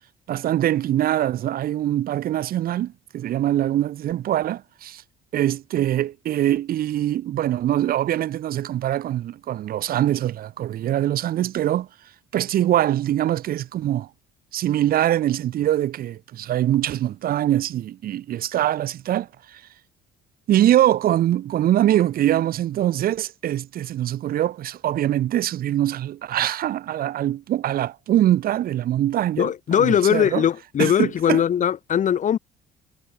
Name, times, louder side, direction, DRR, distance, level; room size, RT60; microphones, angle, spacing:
voice 1, 0.3-5.0 5.3-11.9 12.3-14.1 14.5-19.6 20.5-29.5 29.8-30.4 30.8-31.4, right 12 dB, 60° right, 1.4 m, -23 dB
voice 2, 29.4-32.4, left 9 dB, 50° left, 2.2 m, -20 dB
cardioid pair, 110°, 17 cm